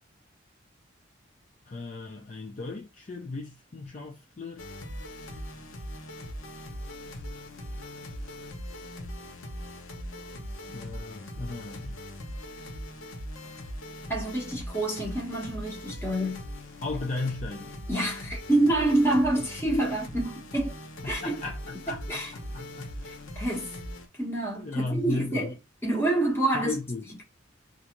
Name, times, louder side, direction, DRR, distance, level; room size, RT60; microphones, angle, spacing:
voice 1, 1.7-4.7 10.7-12.1 16.8-17.7 21.0-22.2 22.5-23.1 24.5-25.5 26.6-27.0, left 3 dB, 40° left, 0.4 m, -35 dB
sound 1, 4.6-24.1, equal, 90° left, 0.7 m, -40 dB
voice 2, 14.1-16.4 17.9-20.8 21.1-21.4 21.9-22.3 23.1-23.7 24.2-25.5 25.8-26.8, right 1 dB, 10° left, 1.0 m, -27 dB
2.5 x 2.4 x 2.8 m
head